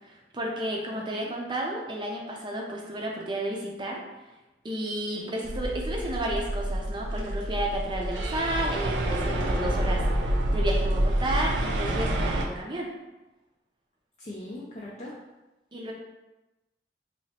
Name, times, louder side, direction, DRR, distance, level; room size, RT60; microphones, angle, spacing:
voice 1, 0.0-4.0 4.6-12.9 15.7-15.9, right 1 dB, 25° right, -1 dB, 0.5 m, -32 dB
voice 2, 0.9-1.3 5.1-5.4 14.2-15.2, left 1 dB, 40° left, -4 dB, 0.4 m, -41 dB
sound 1, 5.4-12.5, right 1 dB, 85° right, 0.4 m, -27 dB
3.1 x 2.9 x 2.9 m, 1.0 s
head